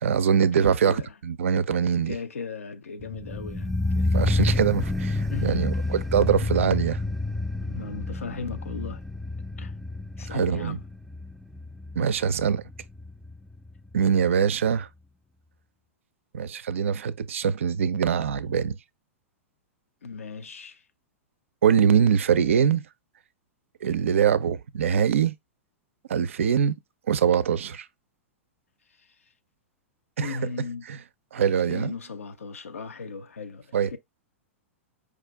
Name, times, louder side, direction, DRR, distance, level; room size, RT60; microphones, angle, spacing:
voice 1, 0.0-2.1 4.1-7.0 10.3-10.8 12.0-12.6 13.9-14.9 16.3-18.8 21.6-22.8 23.8-25.3 26.1-26.7 27.1-27.9 30.2-30.4 30.9-31.0 31.3-31.9 33.7-33.9, right 7 dB, 70° right, 0.4 m, -23 dB
voice 2, 0.6-1.1 2.1-4.3 5.3-5.6 7.6-9.0 9.6-9.7 10.2-10.8 20.0-20.8 30.2-30.9 31.4-34.0, left 4 dB, 80° left, 0.6 m, -37 dB
sound 1, 3.0-14.0 14.3-14.4, left 2 dB, ahead, 0.3 m, -29 dB
4.9 x 2.5 x 3.3 m
figure-of-eight pair, 105°, 7 cm